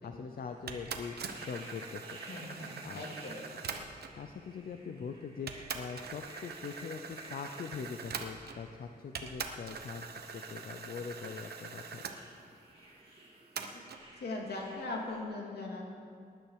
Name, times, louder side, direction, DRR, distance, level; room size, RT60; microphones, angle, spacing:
voice 1, 0.0-2.2 2.8-3.0 4.1-12.0, left 6 dB, 65° left, 5 dB, 0.6 m, -42 dB
sound 1, 0.7-15.2, right 1 dB, 35° right, 4.3 m, -55 dB
sound 2, 0.7-4.2 5.0-5.1 5.5-8.8 9.1-12.2 13.6-14.0, right 5 dB, 85° right, 1.0 m, -43 dB
voice 2, 2.3-3.7 13.7-13.9 14.2-15.8, left 2 dB, 85° left, -1 dB, 2.6 m, -40 dB
19.0 x 11.0 x 4.8 m, 2.4 s
wide cardioid pair, 175°, 16 cm